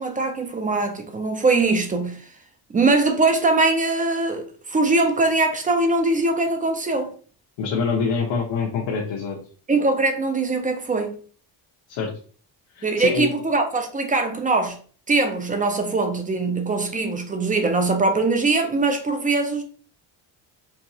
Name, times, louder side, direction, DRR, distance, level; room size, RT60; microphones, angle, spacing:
voice 1, 0.0-2.2 2.7-7.1 9.7-11.2 12.8-14.8 15.1-19.6, right 3 dB, 20° right, 0.3 m, -22 dB
voice 2, 7.6-9.4 11.9-12.1 12.7-13.3, left 5 dB, 85° left, 1.0 m, -25 dB
4.6 x 2.7 x 2.7 m
cardioid pair, 165°, 43 cm